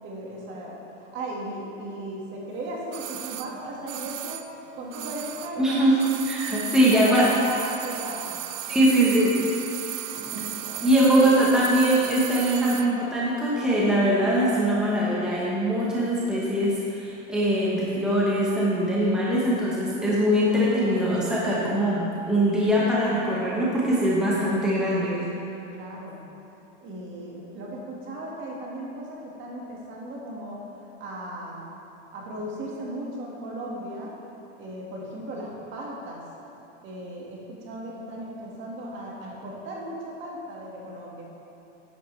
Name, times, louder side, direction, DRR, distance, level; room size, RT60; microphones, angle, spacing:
voice 1, 0.0-4.5 4.7-6.0 6.7-8.4 10.1-11.5 20.9-21.2 25.7-26.2 26.8-31.7 32.1-34.1 34.5-36.2 36.8-41.2, right 1 dB, 30° right, -3 dB, 1.8 m, -37 dB
sound 1, 2.9-5.7 5.9-13.0 13.2-13.3, right 12 dB, 80° right, 0.6 m, -36 dB
voice 2, 5.6-5.9 6.3-7.3 8.7-9.4 10.3-10.4 10.8-25.2, right 1 dB, ahead, -7 dB, 1.1 m, -22 dB
10.5 x 9.5 x 3.3 m, 2.8 s
supercardioid pair, 160°, 38 cm